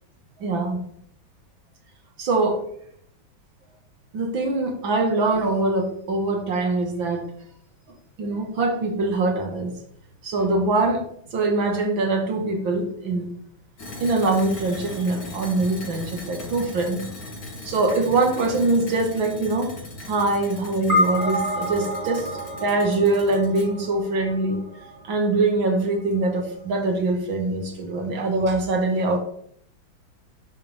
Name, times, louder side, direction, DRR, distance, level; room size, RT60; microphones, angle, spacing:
voice 1, 0.4-0.8 2.2-2.6 4.1-7.3 8.2-9.7 10.2-11.0 11.3-13.3 14.0-17.0 17.6-19.7 20.1-22.3 22.6-24.6 25.0-29.2, right 2 dB, 75° right, 4 dB, 2.8 m, -23 dB
sound 1, 13.8-23.7, left 1 dB, 80° left, 4.2 m, -39 dB
sound 2, 20.9-25.5, left 1 dB, 20° right, 2.7 m, -28 dB
12.0 x 10.5 x 3.7 m, 0.67 s
omnidirectional pair, 2.1 m